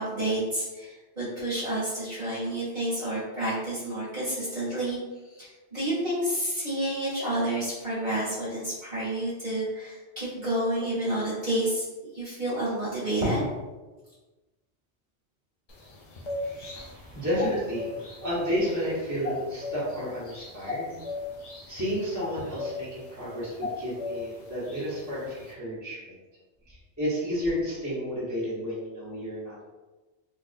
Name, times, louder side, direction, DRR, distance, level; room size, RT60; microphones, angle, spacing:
voice 1, 0.0-5.0 5.3-11.8 12.1-13.4, right 1 dB, 45° right, -10 dB, 1.2 m, -29 dB
sound 1, 15.7-25.5, left 3 dB, 50° left, 0.4 m, -38 dB
voice 2, 16.8-21.0 21.7-26.1 26.7-29.6, equal, 15° right, -9 dB, 1.1 m, -31 dB
3.8 x 2.4 x 2.5 m, 1.2 s
omnidirectional pair, 1.2 m